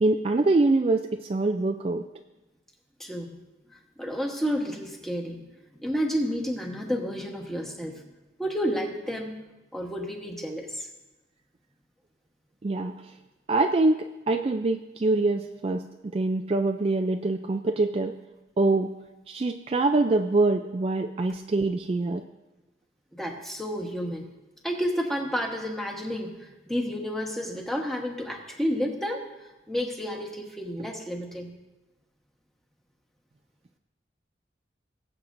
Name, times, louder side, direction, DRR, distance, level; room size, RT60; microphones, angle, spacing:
voice 1, 0.0-2.0 12.6-12.9 13.5-15.8 16.1-18.1 18.6-18.9 19.3-22.2, right 2 dB, 30° right, 5 dB, 0.3 m, -24 dB
voice 2, 3.0-3.4 4.0-5.5 5.8-8.0 8.4-9.3 9.7-10.9 23.1-24.2 24.6-29.3 29.7-31.5, equal, ahead, 1 dB, 1.2 m, -30 dB
21.0 x 7.6 x 2.6 m, 1.1 s
head